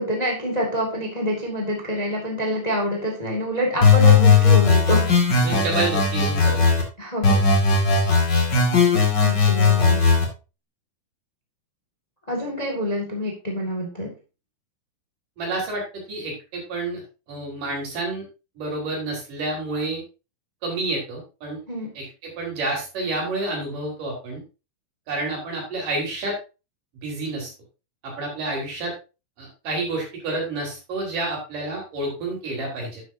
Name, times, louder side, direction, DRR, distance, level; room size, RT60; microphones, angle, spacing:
voice 1, 0.0-5.1 6.6-7.6 9.2-10.1 12.3-14.1 21.7-21.9, equal, 20° left, 0 dB, 1.1 m, -27 dB
sound 1, 3.8-6.8 7.2-10.2, left 4 dB, 35° left, 2.4 m, -17 dB
voice 2, 5.4-6.8 15.4-17.0 17.3-18.2 18.6-20.0 20.6-21.6 22.0-22.1 22.4-24.4 25.1-26.4 27.0-27.5 28.0-28.9 29.4-33.0, right 2 dB, 60° right, -2 dB, 5.5 m, -29 dB
11.0 x 8.0 x 2.7 m, 0.30 s
omnidirectional pair, 4.1 m